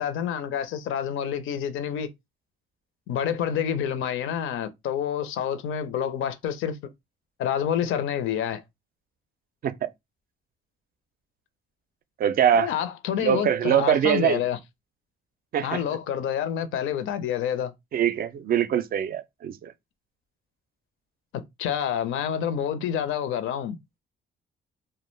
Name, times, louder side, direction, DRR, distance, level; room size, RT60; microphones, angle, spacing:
voice 1, 0.0-2.1 3.1-6.8 7.4-8.6 12.5-14.6 15.6-17.7 21.3-23.8, left 9 dB, 80° left, 0.5 m, -28 dB
voice 2, 12.2-12.7 13.2-14.4 15.5-15.8 17.9-19.7, right 9 dB, 50° right, 0.4 m, -23 dB
2.3 x 2.1 x 3.1 m
cardioid pair, 90°, 20 cm